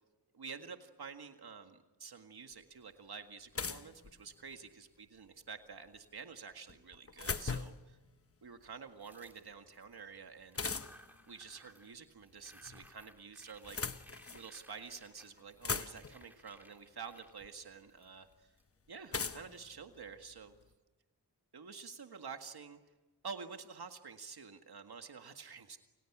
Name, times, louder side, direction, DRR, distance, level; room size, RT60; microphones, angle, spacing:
voice 1, 0.3-8.0 8.4-10.6 11.3-13.9 14.3-18.5 18.9-20.5 21.5-22.8 23.2-25.8, right 5 dB, 70° right, 6 dB, 1.9 m, -49 dB
sound 1, 2.5-2.6 3.5-4.7 6.7-7.9 10.5-11.2 12.3-12.9 13.5-14.5 15.1-15.2 15.4-16.3 17.4-17.5 19.1-20.6, left 5 dB, 35° left, 1.0 m, -40 dB
sound 2, 9.0-10.0 10.4-12.0 12.2-18.6, equal, 5° right, 3.5 m, -61 dB
30.0 x 29.5 x 6.1 m, 1.2 s
wide cardioid pair, 120°, 39 cm